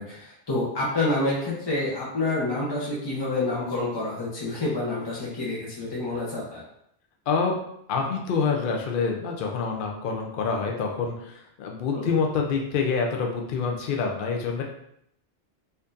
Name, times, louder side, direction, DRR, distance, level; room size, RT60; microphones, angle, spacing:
voice 1, 0.0-6.6 11.9-12.1, left 2 dB, 25° left, -6 dB, 0.7 m, -28 dB
voice 2, 7.3-7.6 7.9-14.6, left 5 dB, 60° left, 1 dB, 0.6 m, -26 dB
4.3 x 2.6 x 2.5 m, 0.73 s
omnidirectional pair, 1.2 m